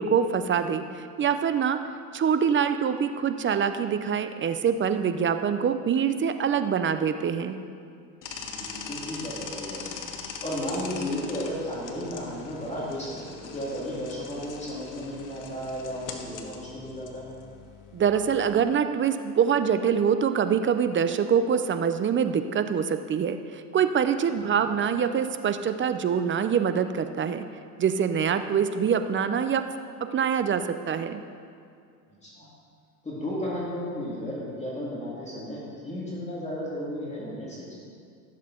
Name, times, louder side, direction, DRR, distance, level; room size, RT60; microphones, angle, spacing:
voice 1, 0.0-1.8 2.1-7.6 17.9-27.4 27.8-29.6 30.0-31.2, right 7 dB, 25° right, 9 dB, 0.5 m, -25 dB
sound 1, 8.2-18.6, left 6 dB, 40° left, 1.4 m, -41 dB
voice 2, 8.4-10.0 10.4-17.4 24.4-24.7 32.2-32.5 33.0-37.8, equal, 15° left, -6 dB, 3.2 m, -34 dB
15.5 x 7.5 x 4.4 m, 2.3 s
hypercardioid pair, 90°, 47 cm